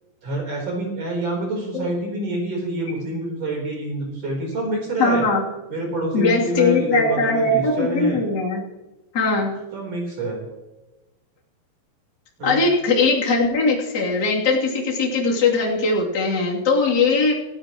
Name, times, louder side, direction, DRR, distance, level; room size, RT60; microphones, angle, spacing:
voice 1, 0.2-5.3 5.7-8.2 9.7-10.4 12.4-12.6, right 2 dB, 40° right, -1 dB, 5.0 m, -27 dB
voice 2, 5.0-5.4 6.1-8.6 9.1-9.6 12.4-17.3, left 3 dB, 25° left, -4 dB, 2.4 m, -20 dB
28.5 x 15.0 x 3.1 m, 1.0 s
omnidirectional pair, 5.8 m